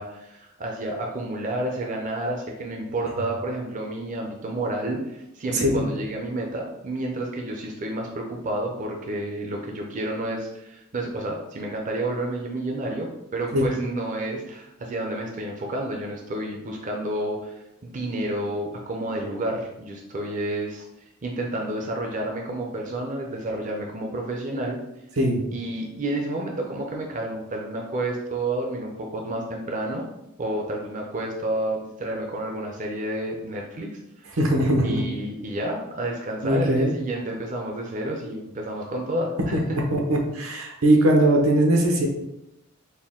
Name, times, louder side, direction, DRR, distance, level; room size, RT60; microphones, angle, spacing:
voice 1, 0.0-20.9 21.2-24.8 25.5-30.0 30.4-34.3 34.8-39.6, right 1 dB, 40° right, 1 dB, 0.5 m, -30 dB
voice 2, 34.4-35.0 36.4-36.9 39.5-39.6 39.9-42.1, right 1 dB, 85° right, 1 dB, 0.9 m, -20 dB
4.2 x 2.2 x 3.6 m, 0.86 s
head